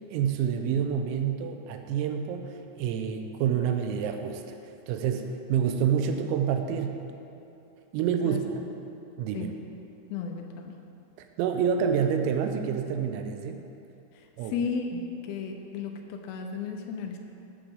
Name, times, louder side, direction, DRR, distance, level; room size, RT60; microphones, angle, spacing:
voice 1, 0.1-7.0 7.9-8.7 9.2-9.5 11.2-13.6 14.4-14.5, right 7 dB, 85° right, 6 dB, 3.3 m, -28 dB
voice 2, 10.1-10.8 14.2-17.2, left 5 dB, 90° left, 3 dB, 3.6 m, -34 dB
14.0 x 8.0 x 3.7 m, 2.7 s
omnidirectional pair, 6.0 m